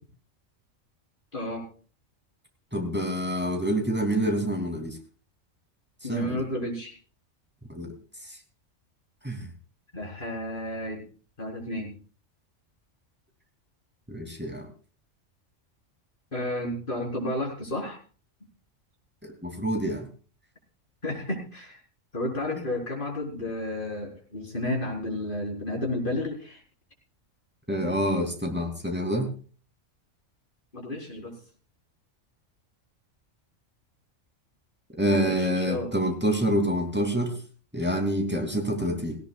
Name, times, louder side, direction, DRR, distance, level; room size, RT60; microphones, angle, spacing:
voice 1, 1.3-1.6 6.0-7.0 9.9-11.0 11.4-11.9 16.3-18.0 21.0-21.8 22.1-26.6 30.7-31.4 35.1-35.9, left 1 dB, 40° left, 0 dB, 4.7 m, -32 dB
voice 2, 2.7-5.0 6.1-6.4 7.7-7.9 9.2-9.5 14.1-14.7 19.4-20.1 27.7-29.3 35.0-37.3 37.7-39.2, equal, 10° right, 2 dB, 3.0 m, -27 dB
18.0 x 17.0 x 2.4 m, 0.39 s
omnidirectional pair, 1.3 m